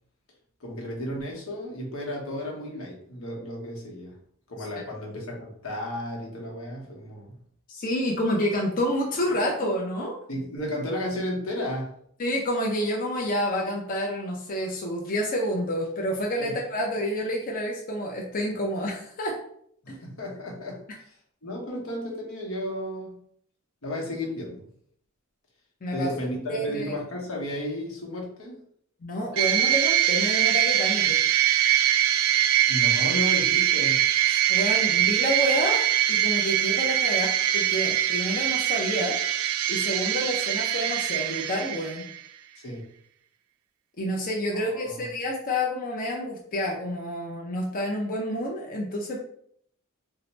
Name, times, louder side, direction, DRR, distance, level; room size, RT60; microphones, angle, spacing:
voice 1, 0.6-4.2 4.5-7.4 10.3-12.0 16.4-16.5 19.8-21.2 21.4-23.2 23.8-24.7 25.9-28.6 32.7-34.1 42.6-42.9 44.5-45.1, left 1 dB, 85° left, -1 dB, 1.0 m, -33 dB
voice 2, 7.7-10.2 12.2-19.4 19.9-20.0 25.8-26.1 26.5-26.9 29.0-31.2 34.5-35.8 36.1-39.2 39.7-42.1 44.0-49.2, equal, 40° left, -1 dB, 0.5 m, -29 dB
sound 1, 29.4-42.2, right 11 dB, 75° right, 0.3 m, -23 dB
2.7 x 2.1 x 4.1 m, 0.65 s
head